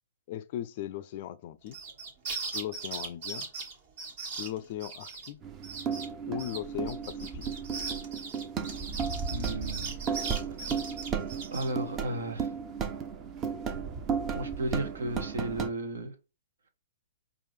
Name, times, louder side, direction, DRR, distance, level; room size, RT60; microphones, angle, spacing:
voice 1, 0.3-1.8 2.5-3.5 4.4-5.4 6.3-7.4, left 12 dB, 45° left, 0.4 m, -38 dB
sound 1, 1.7-5.3 5.6-6.1 6.4-11.7, right 4 dB, 50° right, 1.4 m, -39 dB
sound 2, 5.4-15.7, right 6 dB, 25° right, 0.6 m, -34 dB
voice 2, 9.3-9.9 10.6-10.7 11.5-12.5 14.3-16.1, right 1 dB, 70° right, 1.0 m, -34 dB
4.7 x 2.5 x 3.1 m
figure-of-eight pair, 120°, 0 cm